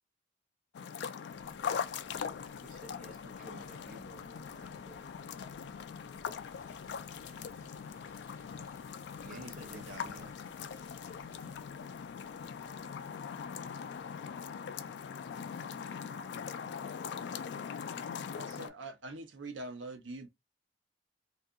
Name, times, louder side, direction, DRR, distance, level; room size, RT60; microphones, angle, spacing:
sound 1, 0.7-18.7, left 7 dB, 65° left, 0.3 m, -41 dB
sound 2, 1.3-15.2, left 1 dB, 20° left, 1.0 m, -64 dB
voice 1, 2.6-5.1 8.6-10.6, right 2 dB, 45° right, 0.6 m, -55 dB
Rain, 6.5-11.6, equal, 15° right, 1.1 m, -66 dB
voice 2, 7.2-8.0 12.6-12.9 15.8-16.5, right 2 dB, 5° left, 1.6 m, -64 dB
voice 3, 9.3-10.3 18.4-20.3, right 2 dB, 85° right, 0.7 m, -45 dB
2.6 x 2.3 x 2.3 m
head